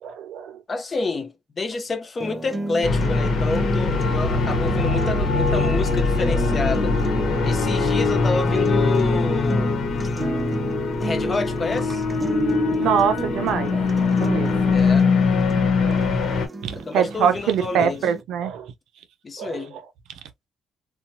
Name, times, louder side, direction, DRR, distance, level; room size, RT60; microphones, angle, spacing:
voice 1, 0.0-0.6 12.8-14.5 15.8-18.7 19.4-19.8, right 8 dB, 80° right, 0.5 m, -25 dB
voice 2, 0.7-7.0 7.4-9.8 11.0-12.0 14.7-15.1 16.7-18.0 19.2-19.8, left 3 dB, 35° left, 0.7 m, -28 dB
sound 1, 2.2-18.2, right 2 dB, 20° right, 0.4 m, -32 dB
sound 2, 2.8-16.5, left 4 dB, 65° left, 1.0 m, -22 dB
2.8 x 2.2 x 2.6 m
cardioid pair, 90°, 0 cm